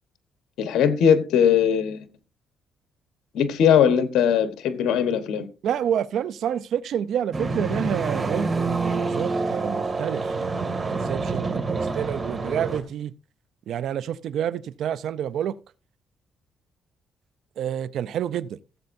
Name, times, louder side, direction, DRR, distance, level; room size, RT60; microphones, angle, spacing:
voice 1, 0.6-2.1 3.3-5.5, left 8 dB, 80° left, 1.2 m, -20 dB
voice 2, 5.6-13.1 13.7-15.6 17.6-18.6, right 9 dB, 75° right, 0.5 m, -28 dB
sound 1, 7.3-12.8, right 3 dB, 30° right, 2.3 m, -27 dB
17.0 x 7.8 x 2.6 m
cardioid pair, 90°, 0 cm